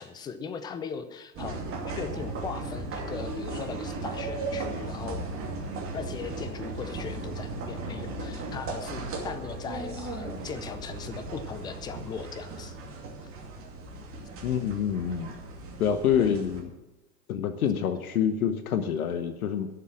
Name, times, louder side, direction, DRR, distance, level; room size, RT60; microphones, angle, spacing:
voice 1, 0.0-5.2 5.9-12.8 13.2-13.3 16.2-16.3, left 6 dB, 10° left, 10 dB, 0.5 m, -39 dB
sound 1, 1.3-16.6, right 2 dB, 25° right, 2.6 m, -36 dB
voice 2, 14.4-15.3 15.8-16.6 17.3-19.7, left 8 dB, 60° left, 9 dB, 1.2 m, -26 dB
11.5 x 6.9 x 8.7 m, 1.0 s
figure-of-eight pair, 100°, 49 cm